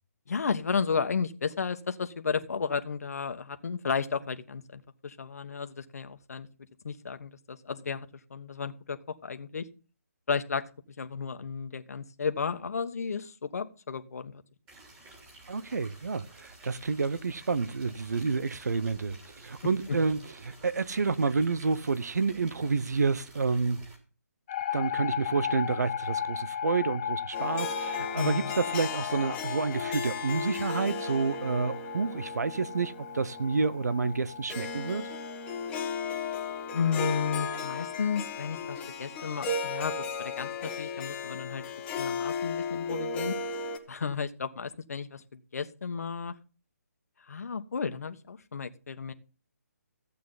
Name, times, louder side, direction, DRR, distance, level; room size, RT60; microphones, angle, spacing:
voice 1, 0.3-6.5 6.8-9.0 9.2-9.7 10.3-10.6 11.0-14.4 28.2-28.5 36.7-41.6 42.0-43.3 43.9-46.3 47.3-49.1, left 5 dB, 65° left, 1.3 m, -33 dB
sound 1, 14.7-24.0, right 2 dB, 15° right, 3.3 m, -52 dB
voice 2, 15.5-23.9 24.7-35.1, right 4 dB, 80° right, 0.9 m, -29 dB
sound 2, 24.5-35.7, left 9 dB, 30° left, 0.7 m, -36 dB
Harp, 27.3-43.8, left 4 dB, 15° left, 1.3 m, -35 dB
15.0 x 8.3 x 4.0 m
hypercardioid pair, 160°, 9 cm